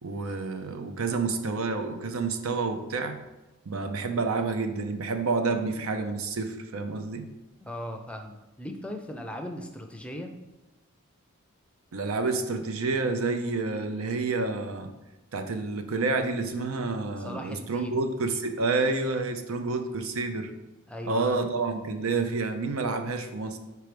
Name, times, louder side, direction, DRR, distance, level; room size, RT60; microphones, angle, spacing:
voice 1, 0.0-3.2 3.7-7.3 11.9-14.9 15.3-20.5 21.0-23.6, right 3 dB, 80° right, 7 dB, 0.6 m, -29 dB
voice 2, 7.6-10.3 17.2-18.0 20.9-21.4, left 1 dB, 5° left, 4 dB, 0.5 m, -38 dB
4.7 x 4.6 x 5.1 m, 1.1 s
head